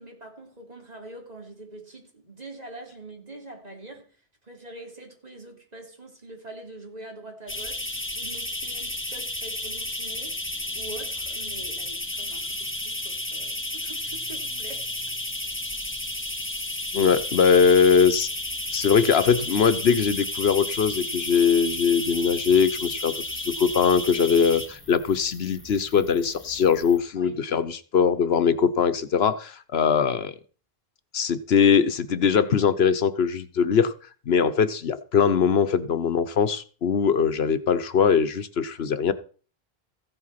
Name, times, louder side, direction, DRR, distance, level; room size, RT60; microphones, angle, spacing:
voice 1, 0.0-4.2 4.4-10.4 10.7-14.9 27.2-27.4, right 2 dB, 40° right, 3.1 m, -44 dB
sound 1, 7.5-27.0, left 1 dB, 10° left, 1.6 m, -32 dB
voice 2, 16.9-18.3 18.7-30.3 31.1-33.9 34.3-39.1, left 6 dB, 80° left, 1.2 m, -21 dB
15.0 x 8.0 x 5.7 m
omnidirectional pair, 1.0 m